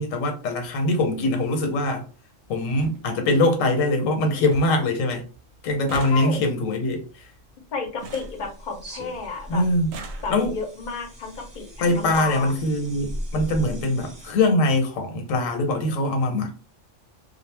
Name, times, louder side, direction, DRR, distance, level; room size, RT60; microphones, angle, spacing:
voice 1, 0.0-2.0 2.5-5.2 5.6-7.2 9.5-9.9 10.3-10.5 11.8-16.6, left 2 dB, 85° left, 1.1 m, -23 dB
sound 1, 2.1-2.2 2.4-2.5 2.8-3.0 3.4-3.9 4.2-4.3 4.5-4.9 5.2-9.1 9.7-10.7 11.5-11.6 11.9-12.5 13.4-13.5 13.8-14.0 14.3-14.4, right 3 dB, 70° right, 0.8 m, -42 dB
voice 2, 6.1-6.4 7.7-9.6 10.2-12.5, left 4 dB, 50° left, 0.6 m, -32 dB
sound 2, 8.0-14.3, equal, 25° right, 0.8 m, -38 dB
2.3 x 2.0 x 3.2 m
omnidirectional pair, 1.3 m